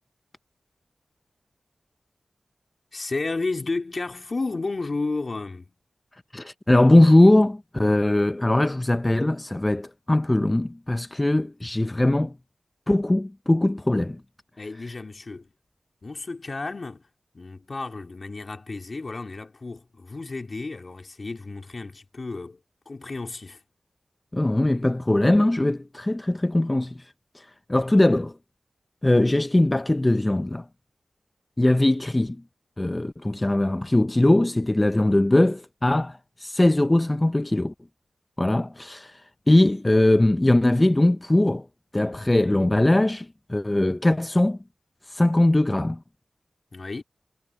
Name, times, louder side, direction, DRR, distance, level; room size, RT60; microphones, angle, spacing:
voice 1, 2.9-5.7 14.6-15.5 16.0-17.1 17.3-23.6 46.7-47.0, left 3 dB, 45° left, 3.3 m, -32 dB
voice 2, 6.3-12.4 12.9-14.2 24.3-28.3 29.0-30.6 31.6-32.4 32.8-37.7 38.4-41.7 41.9-44.6 45.1-46.0, left 1 dB, 20° left, 0.5 m, -21 dB
wide cardioid pair, 85°, 0 cm